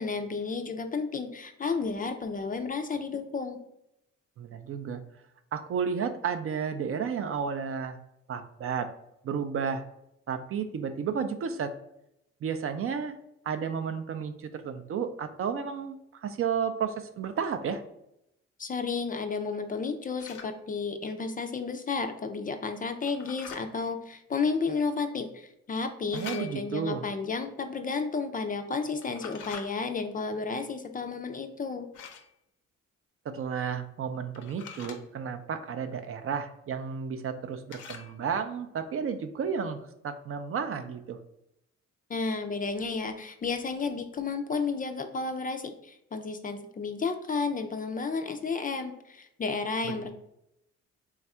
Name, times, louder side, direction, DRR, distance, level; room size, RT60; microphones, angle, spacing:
voice 1, 0.0-3.6 18.6-31.9 42.1-50.1, left 4 dB, 30° left, 7 dB, 0.4 m, -32 dB
voice 2, 4.4-5.0 5.5-8.0 8.3-8.9 9.2-9.8 10.3-11.8 12.4-13.2 13.5-17.8 26.1-27.0 33.2-41.2 49.8-49.9, right 6 dB, 45° right, 8 dB, 0.4 m, -32 dB
sound 1, 20.2-20.5 23.0-23.6 26.1-26.8 29.0-29.7 31.9-32.3 34.3-35.0 37.7-38.1, left 7 dB, 80° left, 0.7 m, -44 dB
3.4 x 2.4 x 4.2 m, 0.81 s
cardioid pair, 90°, 30 cm